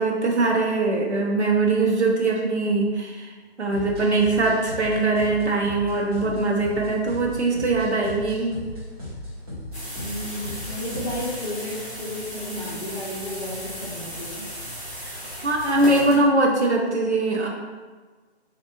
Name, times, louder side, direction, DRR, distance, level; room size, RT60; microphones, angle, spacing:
voice 1, 0.0-3.3 3.6-8.5 15.0-15.2 15.4-17.5, right 2 dB, 80° right, -1 dB, 0.9 m, -22 dB
sound 1, 3.7-11.4, left 1 dB, 20° right, 0.8 m, -37 dB
sound 2, 9.7-16.2, equal, 5° left, 0.6 m, -36 dB
voice 2, 10.0-14.4, left 1 dB, 25° left, -9 dB, 0.9 m, -33 dB
4.4 x 2.6 x 2.6 m, 1.4 s
figure-of-eight pair, 150°, 34 cm